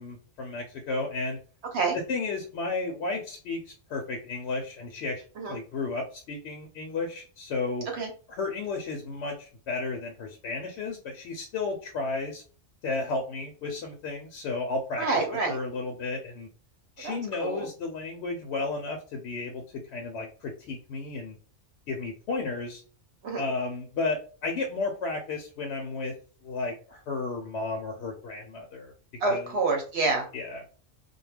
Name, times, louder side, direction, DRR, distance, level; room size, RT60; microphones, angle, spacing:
voice 1, 0.0-1.4 1.9-7.9 8.3-12.4 12.8-15.1 15.5-16.5 17.0-21.4 21.9-22.8 23.4-26.1 26.4-28.9 29.3-29.5 30.3-30.6, left 3 dB, 70° left, 2 dB, 0.8 m, -33 dB
voice 2, 15.0-15.6 17.0-17.7 23.2-23.5 29.2-30.3, right 3 dB, 65° right, 2 dB, 0.9 m, -27 dB
2.2 x 2.2 x 3.2 m, 0.38 s
omnidirectional pair, 1.3 m